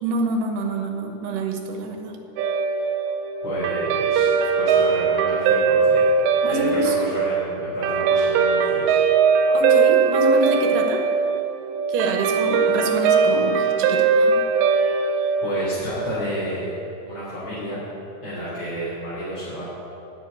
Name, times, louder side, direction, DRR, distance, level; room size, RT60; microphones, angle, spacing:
voice 1, 0.0-2.1 6.4-7.0 9.5-11.0 11.9-14.4, right 3 dB, 65° right, 3 dB, 2.3 m, -26 dB
Guitar, 2.4-16.9, right 5 dB, 85° right, 3.0 m, -20 dB
voice 2, 3.4-4.3 4.6-6.1 6.4-9.0 15.4-17.8 18.2-19.6, equal, 30° left, -10 dB, 3.1 m, -31 dB
10.5 x 7.5 x 9.3 m, 2.7 s
omnidirectional pair, 5.0 m